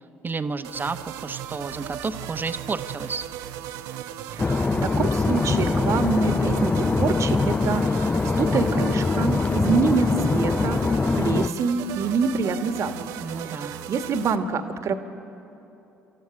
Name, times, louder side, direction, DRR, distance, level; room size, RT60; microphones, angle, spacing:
voice 1, 0.2-3.2 13.2-13.7, right 4 dB, 30° right, 9 dB, 0.9 m, -31 dB
sound 1, 0.6-14.4, right 10 dB, 75° right, 0.8 m, -36 dB
voice 2, 4.3-10.8 11.2-13.1 13.4-15.0, right 5 dB, 50° right, 8 dB, 1.6 m, -26 dB
sound 2, 4.4-11.5, left 3 dB, 20° left, 0.4 m, -23 dB
27.5 x 13.5 x 9.9 m, 2.9 s
hypercardioid pair, 55°, 6 cm